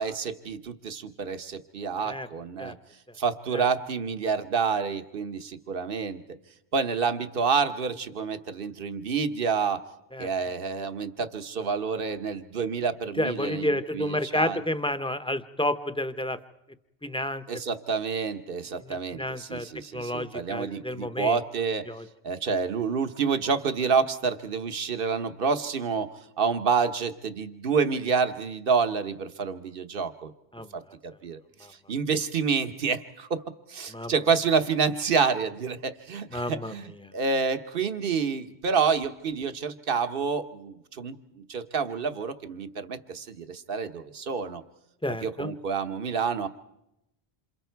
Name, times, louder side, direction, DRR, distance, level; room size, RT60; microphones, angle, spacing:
voice 1, 0.0-2.8 3.2-6.2 6.7-9.8 10.2-14.6 17.5-21.9 22.2-26.1 26.4-30.3 30.7-31.4 31.7-33.4 33.7-44.6 45.2-46.5, right 5 dB, 60° right, 9 dB, 1.3 m, -28 dB
voice 2, 13.2-16.4 17.0-17.4 18.8-19.7 19.9-21.4 21.9-22.0 30.5-30.7 31.6-31.7 33.9-34.1 36.3-36.7 45.0-45.5, left 1 dB, 5° left, 10 dB, 0.7 m, -30 dB
27.5 x 27.5 x 4.6 m, 0.85 s
omnidirectional pair, 1.1 m